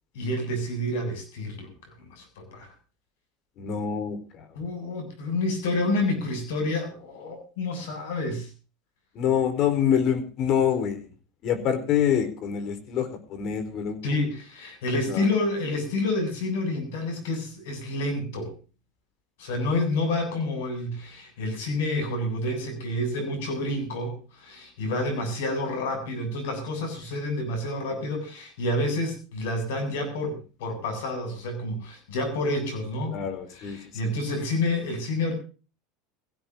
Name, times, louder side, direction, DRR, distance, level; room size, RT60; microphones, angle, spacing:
voice 1, 0.1-1.7 2.0-2.7 4.5-8.5 14.0-18.5 19.4-33.1 33.5-35.3, left 2 dB, 75° left, 7 dB, 7.9 m, -29 dB
voice 2, 3.6-4.4 9.1-11.1 11.4-14.0 15.1-15.3 33.1-33.8 34.0-34.1, left 8 dB, 50° left, 9 dB, 4.4 m, -26 dB
22.0 x 16.0 x 2.8 m, 0.36 s
hypercardioid pair, 90°, 0 cm